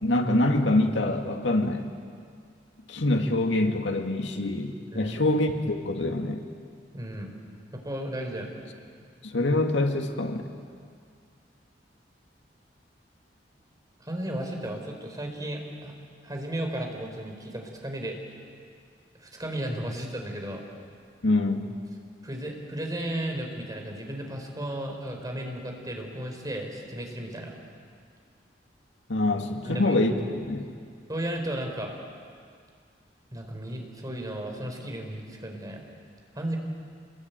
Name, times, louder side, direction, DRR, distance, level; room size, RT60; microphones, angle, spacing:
voice 1, 0.0-1.9 2.9-6.4 9.2-10.5 21.2-21.7 29.1-30.7, left 2 dB, 85° left, 4 dB, 2.2 m, -25 dB
voice 2, 6.9-7.3 7.7-8.5 14.0-15.9 16.2-18.2 19.2-20.6 22.2-27.5 29.6-30.0 31.1-31.9 33.3-35.9 36.3-36.6, right 1 dB, 20° right, 2 dB, 4.3 m, -34 dB
28.0 x 22.0 x 9.2 m, 2.1 s
head